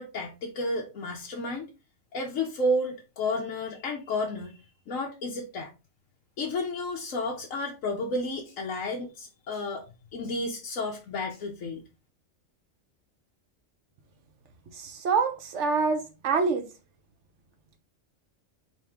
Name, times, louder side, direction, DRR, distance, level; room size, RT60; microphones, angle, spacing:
voice 1, 0.0-1.7 2.1-4.5 4.9-5.7 6.4-9.9 10.1-11.8, left 1 dB, 90° left, 1.2 m, -31 dB
voice 2, 14.7-16.6, right 5 dB, 65° right, 1.2 m, -26 dB
4.5 x 3.3 x 3.5 m
omnidirectional pair, 1.3 m